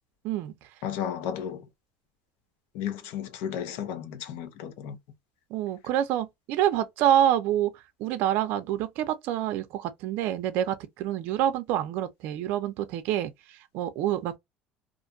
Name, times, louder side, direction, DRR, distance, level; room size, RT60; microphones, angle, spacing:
voice 1, 0.2-0.5 5.5-7.7 8.0-14.4, right 11 dB, 65° right, 0.5 m, -27 dB
voice 2, 0.8-1.7 2.7-5.0, left 9 dB, 75° left, 0.6 m, -33 dB
2.5 x 2.2 x 2.6 m
cardioid pair, 140°, 3 cm